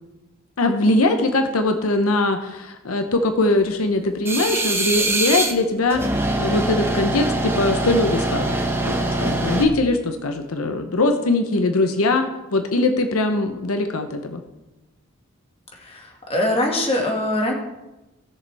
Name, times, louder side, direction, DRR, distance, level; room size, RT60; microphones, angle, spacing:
voice 1, 0.6-8.6 8.9-12.2 12.5-14.4, left 2 dB, 90° left, 6 dB, 0.9 m, -21 dB
sound 1, 4.3-5.5 5.9-9.7, right 2 dB, 10° right, 0.9 m, -23 dB
voice 2, 15.8-17.5, left 1 dB, 30° left, 0 dB, 2.0 m, -22 dB
17.5 x 6.7 x 3.5 m, 1.0 s
head